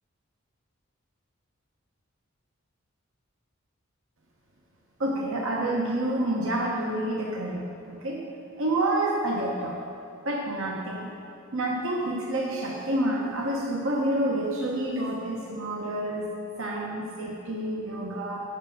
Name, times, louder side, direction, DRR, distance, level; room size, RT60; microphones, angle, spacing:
voice 1, 5.0-8.2 8.6-9.8 10.2-11.1 11.5-16.3 16.6-18.4, right 1 dB, 65° right, -2 dB, 1.0 m, -28 dB
7.4 x 6.1 x 7.8 m, 2.8 s
head